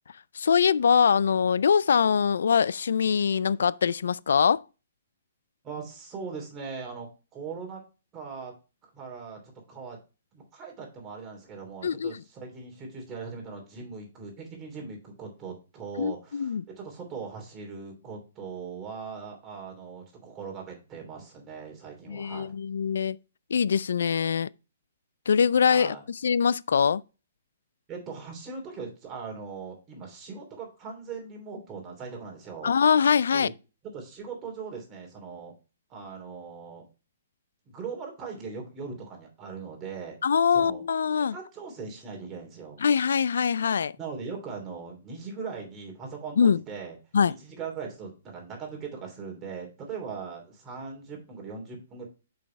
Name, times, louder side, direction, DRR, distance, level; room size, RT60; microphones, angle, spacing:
voice 1, 0.4-4.6 11.8-12.1 16.0-16.6 22.1-23.2 23.5-24.5 25.3-26.0 26.2-27.0 32.6-33.5 40.2-41.3 42.8-43.9 46.4-46.6 47.1-47.3, left 6 dB, 80° left, 0.3 m, -23 dB
voice 2, 5.6-7.8 8.1-8.5 8.8-10.0 10.3-22.5 25.7-26.0 27.9-32.7 33.3-33.5 33.9-35.5 35.9-36.8 37.7-40.2 40.5-40.8 41.3-42.8 44.0-47.0 47.4-52.0, right 5 dB, 20° right, 3.0 m, -40 dB
6.4 x 5.6 x 4.5 m
hypercardioid pair, 150°, 0 cm